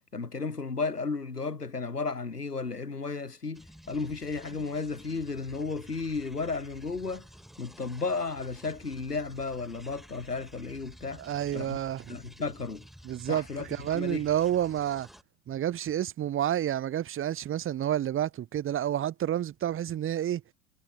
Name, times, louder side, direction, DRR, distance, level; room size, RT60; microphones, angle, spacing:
voice 1, 0.1-7.3 7.6-11.2 11.5-11.8 12.1-12.9 13.3-14.2, left 4 dB, 80° left, 4.0 m, -34 dB
sound 1, 3.5-15.2, equal, ahead, 6.4 m, -52 dB
voice 2, 11.2-12.2 13.0-15.1 15.5-20.4, right 11 dB, 25° right, 5.2 m, -29 dB
figure-of-eight pair, 90°, 46 cm